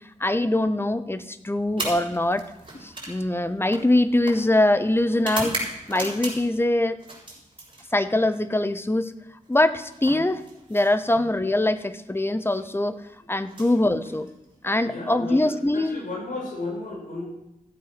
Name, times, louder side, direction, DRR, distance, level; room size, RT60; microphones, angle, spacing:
voice 1, 0.2-2.4 2.8-5.6 5.9-7.0 7.9-9.1 9.5-10.4 10.7-13.0 13.3-14.3 14.6-16.0, left 1 dB, 15° left, 12 dB, 0.9 m, -23 dB
sound 1, 1.7-6.6 7.0-8.2 9.5-11.3 12.4-12.6 13.4-14.6, right 2 dB, 35° right, 6.2 m, -36 dB
voice 2, 14.8-17.2, left 2 dB, 75° left, -2 dB, 6.4 m, -34 dB
15.5 x 8.4 x 6.0 m, 0.88 s
wide cardioid pair, 70°, 14 cm